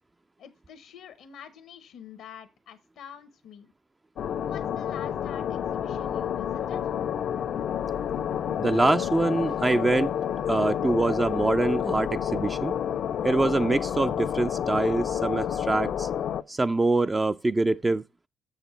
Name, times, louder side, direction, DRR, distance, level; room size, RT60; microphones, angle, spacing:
voice 1, 0.4-3.7 4.5-6.9, left 8 dB, 85° left, 1.0 m, -46 dB
sound 1, 4.2-16.4, left 9 dB, 65° left, 0.5 m, -29 dB
voice 2, 8.6-10.1 10.5-12.8 13.2-16.1 16.5-18.0, right 2 dB, 20° right, 0.4 m, -24 dB
7.2 x 6.6 x 4.3 m
cardioid pair, 90°, 0 cm